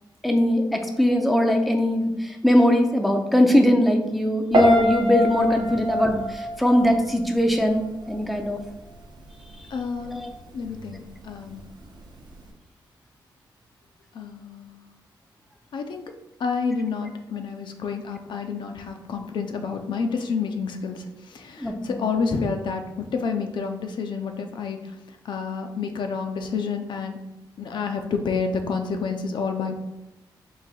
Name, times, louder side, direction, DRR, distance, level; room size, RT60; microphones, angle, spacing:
voice 1, 0.2-8.6 10.1-10.3 21.6-22.0, left 1 dB, ahead, 3 dB, 0.4 m, -21 dB
Piano, 4.5-7.6 7.9-8.3, equal, 60° right, 0.8 m, -24 dB
voice 2, 9.7-10.3 10.5-11.6 14.1-14.8 15.7-16.0 16.4-25.0 25.2-27.2 27.6-29.7, left 5 dB, 70° left, 5 dB, 0.5 m, -29 dB
3.9 x 2.6 x 4.1 m, 1.0 s
wide cardioid pair, 150°, 8 cm